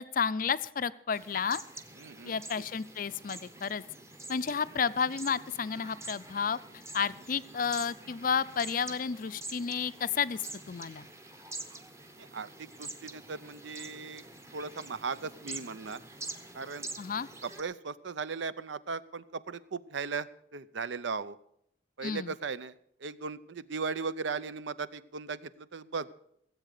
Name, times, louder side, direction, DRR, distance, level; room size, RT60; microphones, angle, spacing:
voice 1, 0.0-1.6 2.2-3.8 4.3-6.6 6.9-11.1 17.0-17.3 22.0-22.3, left 6 dB, 45° left, 15 dB, 0.5 m, -31 dB
sound 1, 1.1-17.6, right 2 dB, 15° right, 0.9 m, -46 dB
voice 2, 2.0-2.6 12.2-14.2 14.5-16.0 16.5-16.9 17.4-21.4 22.0-22.7 23.0-26.1, right 5 dB, 75° right, 16 dB, 0.6 m, -37 dB
17.0 x 8.1 x 6.6 m, 0.71 s
head